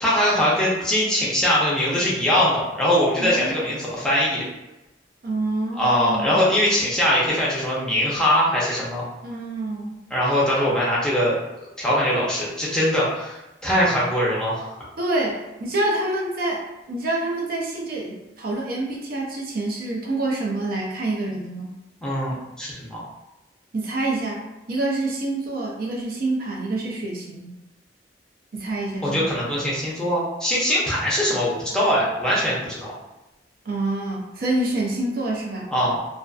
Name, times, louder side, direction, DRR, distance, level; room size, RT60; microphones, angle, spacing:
voice 1, 0.0-4.4 5.8-9.0 10.1-11.4 11.8-14.9 22.0-23.0 29.0-32.9 35.7-36.0, equal, 5° left, -7 dB, 0.6 m, -22 dB
voice 2, 3.2-3.7 5.2-6.6 9.2-10.0 15.0-16.6 16.9-21.7 23.7-27.5 28.5-29.2 33.7-35.7, right 2 dB, 55° right, -3 dB, 0.5 m, -27 dB
2.5 x 2.4 x 2.3 m, 0.98 s
head